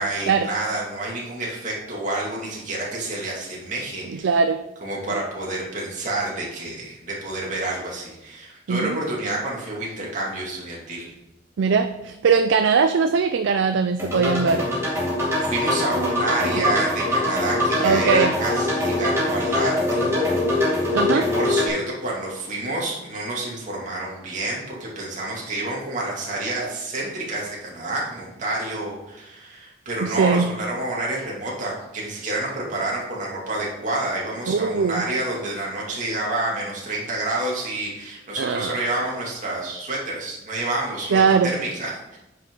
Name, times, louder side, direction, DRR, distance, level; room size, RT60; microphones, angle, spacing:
voice 1, 0.0-4.3 4.8-11.1 15.4-20.3 20.5-20.9 21.1-42.2, right 2 dB, 45° right, -4 dB, 2.4 m, -29 dB
voice 2, 4.1-4.6 5.1-5.2 8.7-9.0 11.6-14.7 17.8-18.3 20.9-21.2 30.0-30.5 34.5-35.0 38.4-38.8 41.1-41.5, right 5 dB, 90° right, 9 dB, 0.4 m, -20 dB
sound 1, 14.0-21.7, left 1 dB, 15° right, 2.4 m, -23 dB
9.3 x 5.7 x 3.9 m, 0.93 s
head